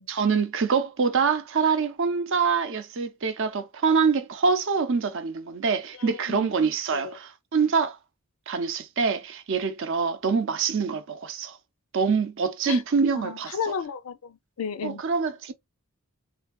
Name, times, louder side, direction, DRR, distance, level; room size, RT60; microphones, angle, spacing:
voice 1, 0.0-8.0 8.5-11.6 11.9-13.6 14.8-15.5, right 5 dB, 55° right, 0.6 m, -25 dB
voice 2, 6.0-6.5 6.9-7.2 12.7-12.8 13.1-15.0, left 6 dB, 80° left, 0.5 m, -33 dB
3.4 x 3.3 x 2.2 m
head